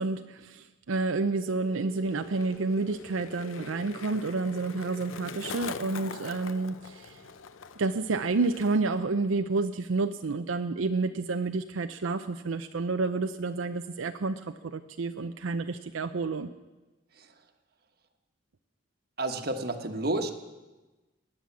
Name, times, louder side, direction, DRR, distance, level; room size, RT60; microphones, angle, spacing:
voice 1, 0.0-7.2 7.8-16.5, right 3 dB, 85° right, 7 dB, 0.6 m, -30 dB
sound 1, 1.4-9.7, left 1 dB, 50° left, 0.9 m, -49 dB
Skateboard, 1.5-9.1 9.3-9.8, left 6 dB, 80° left, 0.6 m, -44 dB
voice 2, 19.2-20.3, right 2 dB, 50° right, 6 dB, 1.2 m, -30 dB
18.0 x 9.9 x 7.3 m, 1.2 s
head